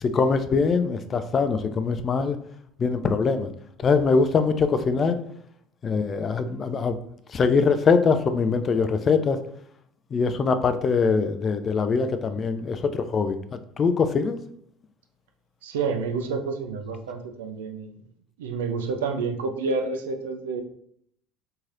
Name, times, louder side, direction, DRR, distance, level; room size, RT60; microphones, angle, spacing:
voice 1, 0.0-2.4 2.8-3.5 3.8-5.2 5.8-7.0 7.3-9.4 10.1-14.4, left 5 dB, 40° left, 9 dB, 0.3 m, -23 dB
voice 2, 15.6-17.9 18.4-20.6, right 4 dB, 80° right, 5 dB, 0.4 m, -29 dB
3.1 x 2.8 x 2.4 m, 0.67 s
hypercardioid pair, 70°, 0 cm